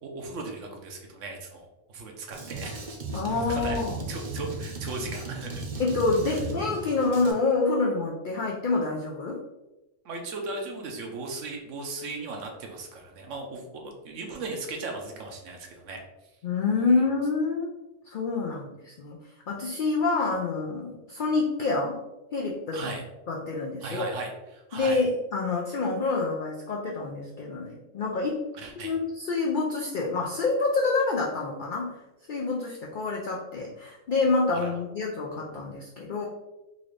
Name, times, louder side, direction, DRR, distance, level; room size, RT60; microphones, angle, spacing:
voice 1, 0.0-2.8 3.3-3.8 4.1-5.6 6.3-6.4 10.0-16.0 16.8-17.0 22.7-23.0 23.8-25.0 28.5-28.9 34.5-34.8, right 3 dB, 70° right, 2 dB, 1.0 m, -37 dB
Drum kit, 2.3-7.3, right 2 dB, 50° right, 0.6 m, -36 dB
voice 2, 3.1-4.0 5.8-9.4 16.4-17.7 18.1-19.2 19.5-22.0 22.3-22.9 23.3-24.1 24.7-28.4 28.8-31.9 32.3-36.3, left 3 dB, 70° left, -1 dB, 0.4 m, -27 dB
4.0 x 2.5 x 3.2 m, 1.0 s
omnidirectional pair, 1.3 m